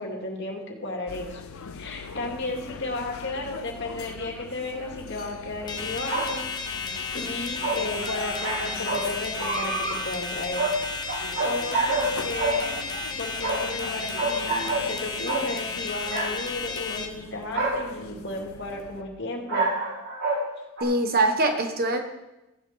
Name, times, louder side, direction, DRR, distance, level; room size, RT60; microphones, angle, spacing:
voice 1, 0.0-1.4 1.7-6.4 6.7-10.7 11.2-12.7 13.2-19.7, left 2 dB, 55° left, 1 dB, 2.4 m, -34 dB
sound 1, 1.1-19.0, left 5 dB, 90° left, 0.8 m, -42 dB
sound 2, 4.0-4.1 6.1-6.3 7.6-9.0 9.4-10.0 10.6-10.8 11.1-12.1 12.4-13.9 14.2-14.9 15.3-15.5 16.1-16.3 16.8-16.9 17.5-17.9 19.5-20.4 20.8-20.9, right 2 dB, 90° right, 4.9 m, -27 dB
sound 3, 5.7-17.1, left 4 dB, 20° left, 0.9 m, -33 dB
voice 2, 20.8-22.0, right 2 dB, 45° right, 5 dB, 1.3 m, -23 dB
15.5 x 7.4 x 5.7 m, 0.98 s
head